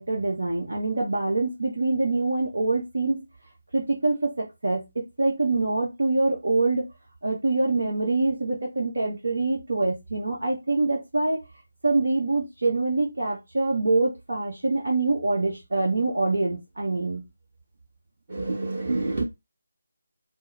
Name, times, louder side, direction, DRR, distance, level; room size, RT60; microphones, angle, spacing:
voice 1, 0.0-3.2 3.7-4.8 5.2-6.9 7.2-11.4 11.8-17.2, right 2 dB, 60° right, 1.0 m, -25 dB
voice 2, 18.3-19.2, right 2 dB, 35° right, 1.4 m, -27 dB
4.4 x 2.1 x 3.2 m
figure-of-eight pair, 155°, 0 cm